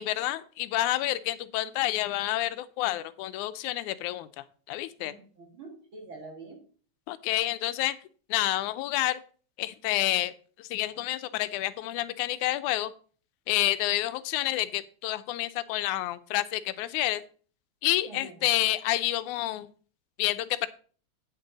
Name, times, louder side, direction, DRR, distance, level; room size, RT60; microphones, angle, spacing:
voice 1, 0.0-5.1 7.1-8.0 8.3-9.2 9.6-10.3 10.6-12.9 13.5-17.2 17.8-19.7 20.2-20.7, left 15 dB, 90° left, 13 dB, 2.0 m, -29 dB
voice 2, 5.0-6.6 18.0-18.5, right 3 dB, 45° right, 2 dB, 2.6 m, -46 dB
8.8 x 8.0 x 4.0 m, 0.43 s
omnidirectional pair, 3.4 m